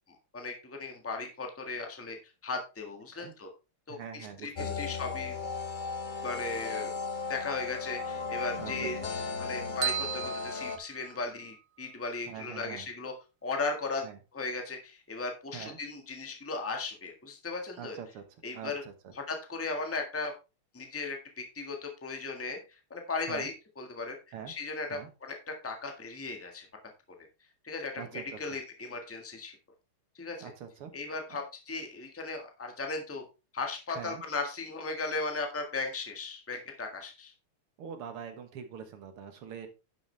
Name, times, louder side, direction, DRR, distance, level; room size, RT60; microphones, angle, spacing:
voice 1, 0.1-2.2 2.4-3.5 3.9-5.4 6.2-6.9 7.3-9.0 9.4-13.1 13.4-18.0 18.4-18.8 19.1-20.3 20.7-22.6 22.9-24.1 24.5-25.4 25.6-26.7 27.6-29.5 30.1-30.5 30.9-33.2 33.5-37.3, left 3 dB, 5° left, 3 dB, 1.4 m, -37 dB
voice 2, 3.9-4.8 8.6-9.1 12.3-12.9 14.0-14.2 15.5-15.8 17.8-18.2 18.5-19.1 23.3-23.5 24.3-24.5 24.9-25.1 28.0-28.2 30.4-30.9 31.3-31.4 34.0-34.2 37.8-39.7, right 8 dB, 80° right, 8 dB, 2.3 m, -43 dB
sound 1, 4.5-10.8, left 4 dB, 65° left, 0.4 m, -36 dB
sound 2, 9.8-11.6, right 9 dB, 50° right, 1.4 m, -35 dB
11.0 x 7.1 x 3.4 m, 0.29 s
omnidirectional pair, 2.4 m